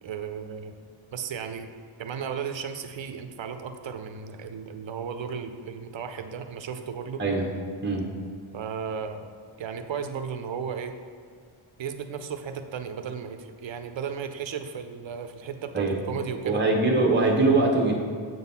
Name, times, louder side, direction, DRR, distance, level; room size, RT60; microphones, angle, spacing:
voice 1, 0.0-0.7 1.1-1.7 2.0-7.2 8.5-9.3 9.6-11.0 11.8-16.6, right 7 dB, 65° right, 8 dB, 0.6 m, -35 dB
voice 2, 16.4-18.0, right 3 dB, 20° right, 0 dB, 0.9 m, -22 dB
7.7 x 3.9 x 5.5 m, 2.1 s
wide cardioid pair, 165°, 48 cm